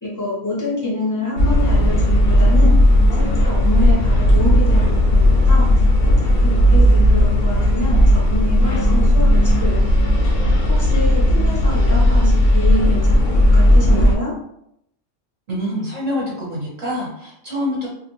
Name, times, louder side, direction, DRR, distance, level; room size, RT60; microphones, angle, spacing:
voice 1, 0.0-2.8 3.2-9.8 10.7-14.3, left 2 dB, 25° left, -5 dB, 0.4 m, -27 dB
sound 1, 1.4-14.2, left 1 dB, 55° left, 0.7 m, -14 dB
voice 2, 15.5-17.9, left 1 dB, 40° right, -5 dB, 0.7 m, -26 dB
2.4 x 2.1 x 3.0 m, 0.77 s
omnidirectional pair, 1.4 m